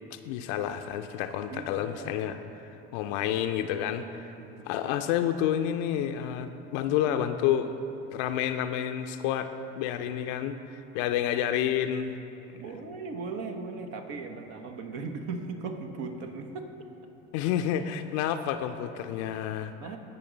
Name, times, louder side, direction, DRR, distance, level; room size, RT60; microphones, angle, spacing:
voice 1, 0.1-2.4 2.6-4.3 4.6-7.7 8.1-9.5 9.8-12.1 17.3-19.7, left 10 dB, 70° left, 8 dB, 0.5 m, -29 dB
voice 2, 1.5-2.2 4.4-4.7 12.5-16.7 19.8-20.0, right 4 dB, 65° right, 5 dB, 0.9 m, -38 dB
14.5 x 5.1 x 3.8 m, 2.8 s
hypercardioid pair, 65°, 36 cm